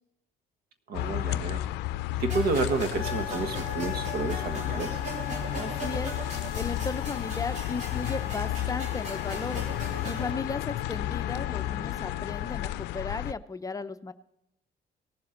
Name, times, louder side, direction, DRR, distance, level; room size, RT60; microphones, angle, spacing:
sound 1, 0.9-13.3, left 14 dB, 85° left, 0.5 m, -32 dB
voice 1, 0.9-1.7 2.2-5.0, right 4 dB, 65° right, 9 dB, 1.5 m, -30 dB
sound 2, 2.3-10.3, right 2 dB, 45° right, 3.2 m, -40 dB
Wind instrument woodwind instrument, 2.9-12.8, left 10 dB, 45° left, 0.9 m, -41 dB
voice 2, 5.6-6.1 6.5-9.6 10.0-14.1, left 3 dB, 20° left, 10 dB, 0.6 m, -35 dB
18.0 x 7.6 x 3.8 m, 0.83 s
cardioid pair, 110°, 17 cm